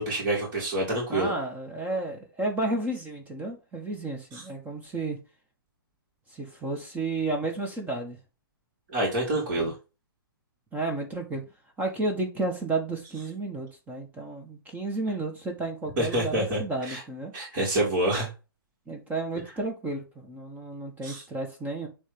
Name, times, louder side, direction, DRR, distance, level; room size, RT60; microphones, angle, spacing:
voice 1, 0.0-1.3 4.3-4.4 8.9-9.7 16.0-16.6 16.9-17.0 17.3-18.3 21.0-21.2, right 1 dB, 40° right, 3.8 m, -27 dB
voice 2, 1.1-5.2 6.3-8.2 9.3-9.7 10.7-11.4 11.8-17.3 18.9-21.9, right 2 dB, 15° right, 1.6 m, -32 dB
9.7 x 3.5 x 3.6 m
figure-of-eight pair, 125°, 12 cm